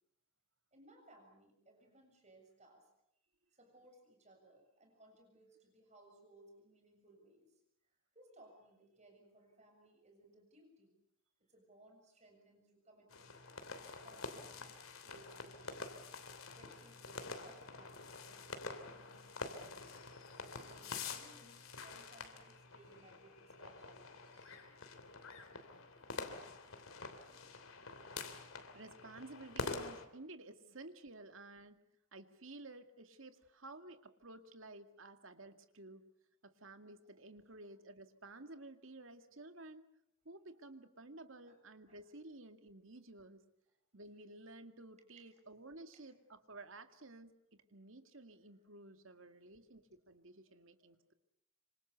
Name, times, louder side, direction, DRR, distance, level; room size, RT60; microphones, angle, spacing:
voice 1, 0.7-2.9 3.5-7.5 8.1-11.0 11.4-13.3 13.9-16.0 16.6-19.9 20.5-24.8 27.9-28.1 41.5-41.6 41.9-42.0 45.2-45.4 50.5-50.6, right 1 dB, 35° right, 3 dB, 7.2 m, -64 dB
sound 1, 13.1-30.1, left 4 dB, 85° left, 3.1 m, -47 dB
voice 2, 28.7-31.8 32.1-36.1 36.4-39.9 40.2-43.4 43.9-51.1, right 2 dB, 70° right, 7 dB, 2.2 m, -54 dB
26.5 x 26.0 x 6.9 m, 0.76 s
head